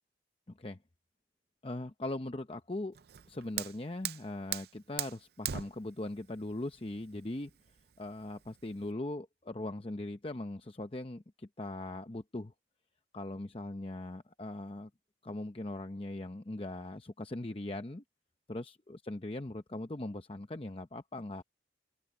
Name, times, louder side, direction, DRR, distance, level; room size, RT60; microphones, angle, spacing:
voice 1, 1.6-3.0 3.3-7.5 8.0-12.5 13.1-14.9 15.2-18.0 18.5-21.4, left 2 dB, 30° left, 0.7 m, -40 dB
Fire, 2.9-8.9, right 11 dB, 60° right, 0.5 m, -42 dB
open air
head